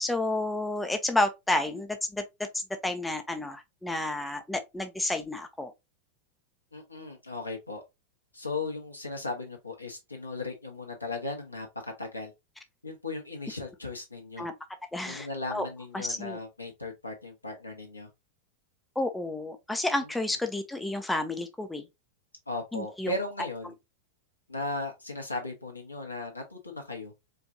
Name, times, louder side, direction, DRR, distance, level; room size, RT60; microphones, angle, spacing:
voice 1, 0.0-2.2 2.5-5.7 14.4-14.5 14.9-15.7 15.9-16.4 19.0-21.8 22.7-23.1, left 2 dB, 5° left, 0.6 m, -30 dB
voice 2, 6.7-7.8 8.3-12.3 12.8-14.5 15.0-18.1 20.0-20.1 22.5-23.7 24.5-27.1, left 2 dB, 85° left, 1.2 m, -37 dB
4.5 x 2.6 x 2.7 m
figure-of-eight pair, 90°, 0 cm